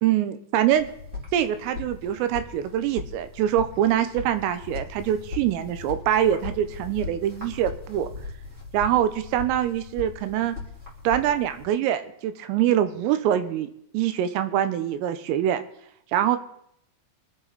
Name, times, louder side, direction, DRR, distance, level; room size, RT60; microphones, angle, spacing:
voice 1, 0.0-0.9 1.3-8.1 8.7-10.6 11.1-13.7 13.9-15.6 16.1-16.4, right 11 dB, 85° right, 10 dB, 3.6 m, -24 dB
sound 1, 0.7-11.6, left 4 dB, 15° right, 3.5 m, -39 dB
24.5 x 9.5 x 4.1 m, 0.71 s
omnidirectional pair, 5.8 m